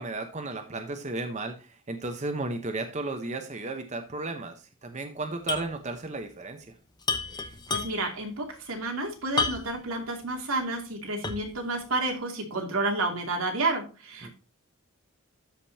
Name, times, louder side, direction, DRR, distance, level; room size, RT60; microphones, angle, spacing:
voice 1, 0.0-6.7 14.2-14.3, right 2 dB, 35° right, 6 dB, 1.0 m, -34 dB
sound 1, 5.5-5.7 6.0-6.1 7.0-8.2 9.4-9.9 10.4-10.5 11.2-11.6, left 4 dB, 20° left, 0.9 m, -30 dB
voice 2, 7.7-14.3, right 2 dB, 90° right, 1 dB, 2.8 m, -30 dB
13.0 x 5.3 x 2.8 m, 0.33 s
head